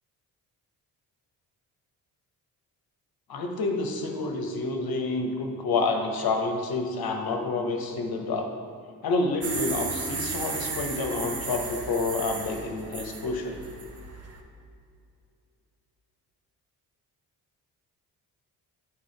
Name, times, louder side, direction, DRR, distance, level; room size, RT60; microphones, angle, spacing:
voice 1, 3.3-8.5 9.0-13.6, left 3 dB, 50° left, 3 dB, 1.0 m, -28 dB
sound 1, 9.4-14.4, right 4 dB, 35° right, 0.8 m, -35 dB
9.3 x 3.9 x 3.3 m, 2.5 s
hypercardioid pair, 50°, 46 cm